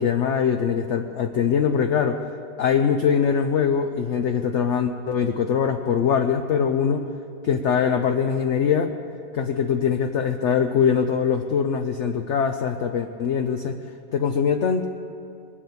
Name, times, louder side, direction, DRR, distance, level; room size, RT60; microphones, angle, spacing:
voice 1, 0.0-2.2 2.6-7.1 7.4-8.9 9.3-13.8 14.1-14.9, left 7 dB, 65° left, 6 dB, 0.7 m, -22 dB
20.5 x 7.4 x 8.5 m, 2.5 s
omnidirectional pair, 1.9 m